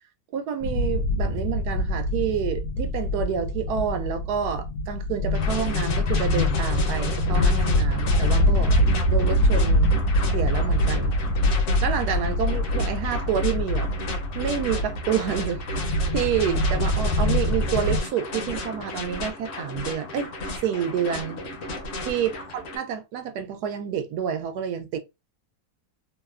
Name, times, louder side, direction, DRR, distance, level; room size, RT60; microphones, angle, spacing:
voice 1, 0.3-8.8 9.1-10.0 10.3-11.2 11.8-13.9 14.3-20.3 20.6-21.4 22.0-25.0, right 8 dB, 80° right, 1.1 m, -28 dB
sound 1, 0.6-18.0, left 1 dB, 85° left, 1.1 m, -24 dB
sound 2, 5.3-22.8, left 2 dB, 60° left, 0.9 m, -34 dB
2.9 x 2.0 x 2.3 m
omnidirectional pair, 1.7 m